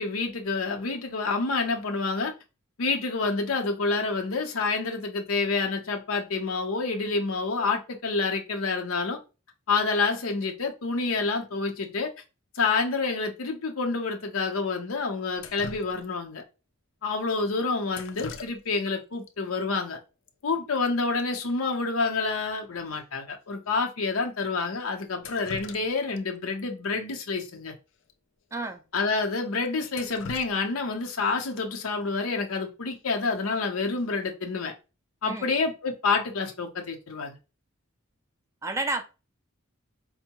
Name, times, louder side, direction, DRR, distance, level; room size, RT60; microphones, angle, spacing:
voice 1, 0.0-2.3 2.8-9.2 9.7-12.1 12.5-16.4 17.0-20.0 20.4-27.7 28.9-34.7 35.2-37.4, left 4 dB, 90° left, 0.7 m, -28 dB
Drip, 15.4-16.4 17.9-18.9 19.2-19.3 20.3-20.4 20.6-20.9 21.2-21.3 21.7-21.8 22.3-22.4 22.9-23.0 23.7-23.8 25.0-26.2 26.6-26.7 28.0-28.1 28.5-28.6 29.1-29.2 29.6-31.3 33.3-33.6 34.0-34.4, left 5 dB, 65° left, 0.4 m, -43 dB
voice 2, 28.5-28.8 35.2-35.5 38.6-39.0, right 2 dB, 15° right, 0.4 m, -30 dB
4.4 x 2.1 x 2.9 m
head